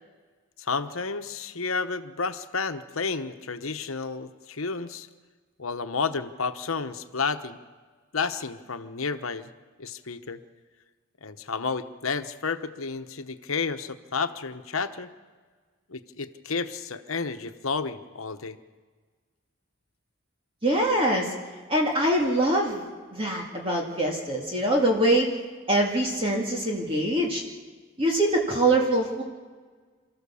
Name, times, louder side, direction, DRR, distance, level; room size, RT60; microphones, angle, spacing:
voice 1, 0.6-5.1 5.6-7.6 8.1-9.5 9.8-10.4 11.2-15.1 15.9-18.6, left 4 dB, 80° left, 9 dB, 1.1 m, -31 dB
voice 2, 20.6-21.3 21.7-22.8 23.1-25.3 25.7-27.4 28.0-29.2, right 1 dB, 25° right, 0 dB, 2.2 m, -23 dB
28.5 x 14.0 x 7.1 m, 1.5 s
head